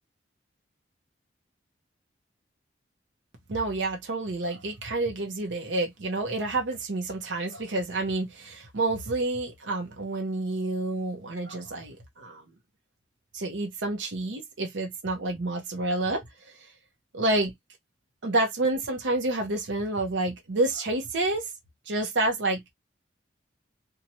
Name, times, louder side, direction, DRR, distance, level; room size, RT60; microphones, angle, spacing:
voice 1, 3.5-12.4 13.3-16.2 17.1-17.5 18.2-21.5 21.9-22.6, right 2 dB, 85° right, 0.7 m, -29 dB
2.9 x 2.2 x 2.7 m
head